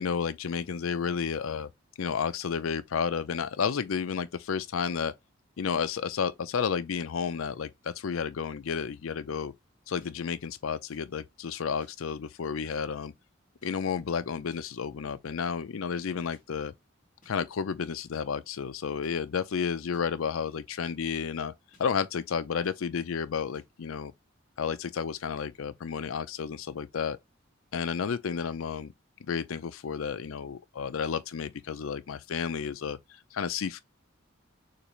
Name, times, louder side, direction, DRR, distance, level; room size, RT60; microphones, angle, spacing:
voice 1, 0.0-1.7 2.0-5.1 5.6-9.5 9.9-13.1 13.6-16.7 17.3-21.5 21.8-24.1 24.6-27.2 27.7-28.9 29.3-33.0 33.3-33.8, left 6 dB, 90° left, 0.5 m, -31 dB
sound 1, 10.0-10.1 10.9-11.0 11.8-11.9 12.7-12.8 13.6-13.7 14.5-14.6 15.4-15.5 16.3-16.4 17.2-17.3 18.1-18.2 19.0-19.1 19.9-20.0 20.8-21.0 21.7-21.9 22.6-22.8 23.5-23.7, left 2 dB, 40° left, 2.4 m, -61 dB
6.6 x 2.5 x 3.1 m
head